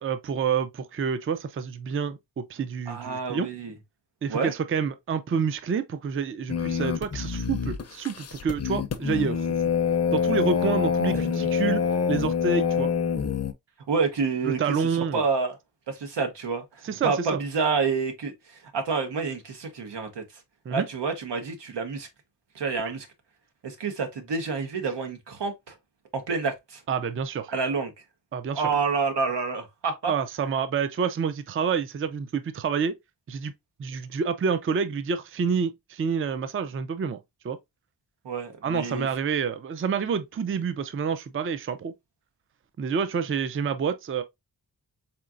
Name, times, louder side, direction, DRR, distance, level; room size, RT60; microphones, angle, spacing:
voice 1, 0.0-3.5 4.2-9.5 10.1-12.9 14.5-15.2 16.8-17.3 20.7-20.9 26.9-27.5 28.3-28.7 30.1-32.9 33.3-33.5 33.8-37.2 37.4-37.6 38.6-41.9 42.8-44.2, right 6 dB, 35° right, 0.4 m, -28 dB
voice 2, 2.9-3.7 4.3-4.5 13.9-14.6 15.1-15.6 15.9-20.2 20.7-22.1 22.5-23.1 23.6-25.7 26.1-26.8 27.5-27.9 28.5-30.1 38.2-39.1, right 4 dB, 90° right, 1.2 m, -28 dB
sound 1, 6.5-13.5, left 6 dB, 40° left, 0.5 m, -26 dB
4.4 x 3.8 x 2.4 m
wide cardioid pair, 160°, 41 cm